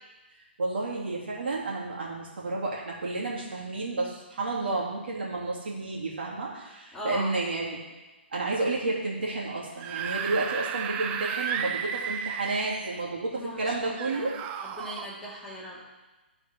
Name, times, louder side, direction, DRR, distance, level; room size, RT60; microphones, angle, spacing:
voice 1, 0.6-7.8 8.3-14.4, right 2 dB, 65° right, -3 dB, 2.2 m, -31 dB
voice 2, 6.9-7.4 13.3-15.8, equal, 5° left, -6 dB, 1.7 m, -39 dB
Screaming / Screech, 9.6-13.0 14.0-15.1, right 7 dB, 20° right, 0.4 m, -33 dB
12.5 x 4.2 x 3.4 m, 1.2 s
figure-of-eight pair, 135°, 6 cm